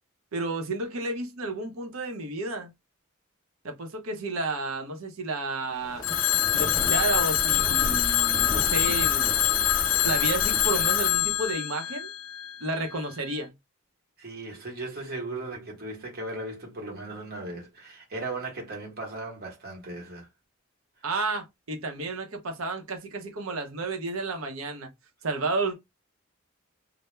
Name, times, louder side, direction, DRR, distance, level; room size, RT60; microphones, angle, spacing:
voice 1, 0.3-2.7 3.6-6.0 6.5-9.3 10.0-12.1 12.6-13.5 21.0-24.9 25.2-25.7, right 2 dB, 85° right, 0.7 m, -31 dB
sound 1, 5.7-11.5, left 1 dB, 20° left, 0.6 m, -35 dB
Telephone, 6.0-12.8, left 12 dB, 70° left, 0.4 m, -25 dB
voice 2, 14.2-20.3, right 2 dB, 50° right, 1.0 m, -37 dB
2.2 x 2.0 x 3.0 m
head